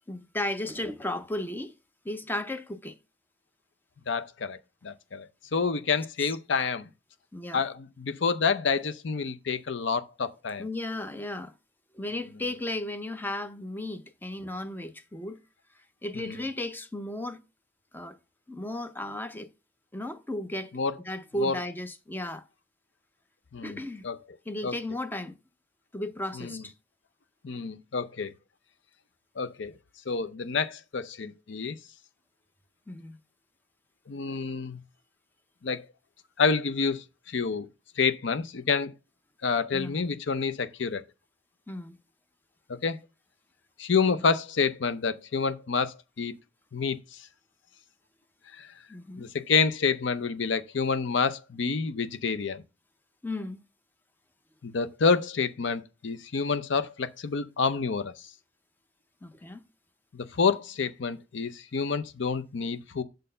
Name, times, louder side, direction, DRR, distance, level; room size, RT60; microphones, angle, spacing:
voice 1, 0.1-1.7 2.0-2.9 7.3-7.6 10.6-11.5 11.9-15.4 16.0-17.4 17.9-18.2 18.5-19.5 19.9-20.7 21.1-22.4 23.6-24.1 24.5-25.3 25.9-26.7 32.9-33.2 39.7-40.0 41.7-42.0 48.9-49.3 53.2-53.6 59.2-59.6, left 1 dB, 10° left, 0.6 m, -35 dB
voice 2, 4.1-6.9 7.5-10.7 16.2-16.4 20.7-21.0 21.4-21.5 23.5-24.2 24.6-24.7 26.4-26.6 27.4-28.3 29.4-29.7 30.1-31.8 34.1-34.8 35.6-35.9 36.4-37.7 38.0-38.9 39.4-41.0 42.7-43.0 43.8-46.3 46.7-47.3 48.5-48.7 49.2-52.6 54.6-58.2 60.1-63.0, left 5 dB, 65° left, 0.6 m, -28 dB
6.5 x 4.3 x 6.6 m
head